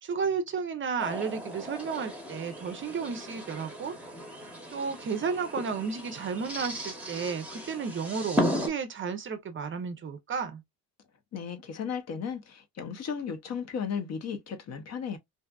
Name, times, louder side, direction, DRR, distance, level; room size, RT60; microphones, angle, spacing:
voice 1, 0.0-4.0 4.4-10.6, right 5 dB, 35° right, 0.5 m, -33 dB
sound 1, 1.0-8.7, left 1 dB, 5° right, 0.8 m, -35 dB
voice 2, 11.3-15.2, left 6 dB, 45° left, 0.6 m, -35 dB
2.6 x 2.3 x 2.2 m
cardioid pair, 115°, 36 cm